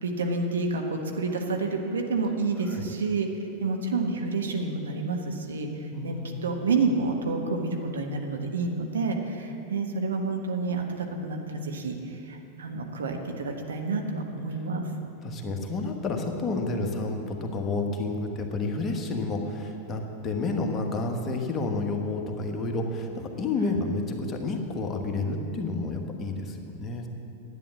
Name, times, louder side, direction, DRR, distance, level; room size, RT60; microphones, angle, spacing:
voice 1, 0.0-3.3 3.6-14.8 23.6-23.8, right 3 dB, 65° right, 2 dB, 1.3 m, -29 dB
voice 2, 5.9-6.4 15.2-27.1, left 3 dB, 25° left, 2 dB, 1.4 m, -30 dB
11.0 x 9.3 x 7.4 m, 2.8 s
figure-of-eight pair, 90°, 0 cm